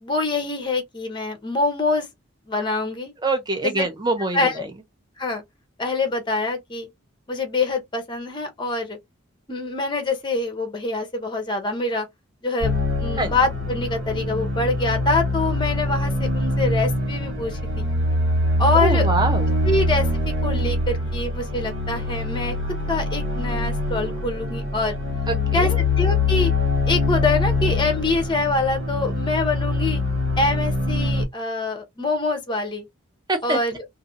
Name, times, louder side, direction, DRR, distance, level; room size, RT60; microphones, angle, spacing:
voice 1, 0.0-2.1 2.5-3.1 3.6-3.9 4.3-4.5 5.2-5.4 5.8-6.9 7.3-9.0 9.5-12.1 12.4-12.7 13.0-17.9 18.6-19.1 19.6-22.6 22.9-25.0 25.5-25.7 26.0-26.5 26.9-30.0 30.4-32.9 33.4-33.8, left 3 dB, 20° left, 0.7 m, -25 dB
voice 2, 3.2-4.7 13.2-13.3 18.7-19.5 25.3-25.8 33.3-33.6, right 2 dB, 20° right, 0.7 m, -24 dB
sound 1, 12.6-31.3, left 2 dB, 65° right, 1.3 m, -24 dB
2.6 x 2.5 x 2.6 m
head